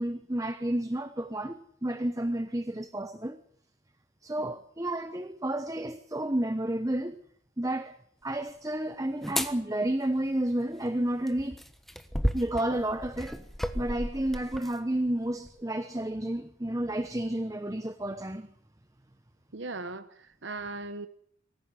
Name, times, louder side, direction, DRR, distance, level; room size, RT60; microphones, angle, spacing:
voice 1, 0.0-3.4 4.2-7.2 7.6-7.9 8.2-11.6 12.3-13.4 13.7-18.5, right 1 dB, 15° right, 0.9 m, -31 dB
sound 1, 9.2-9.5 11.3-14.8 15.5-15.6, equal, ahead, 1.2 m, -33 dB
voice 2, 19.5-21.1, right 3 dB, 60° right, 1.1 m, -38 dB
24.0 x 15.0 x 9.8 m
head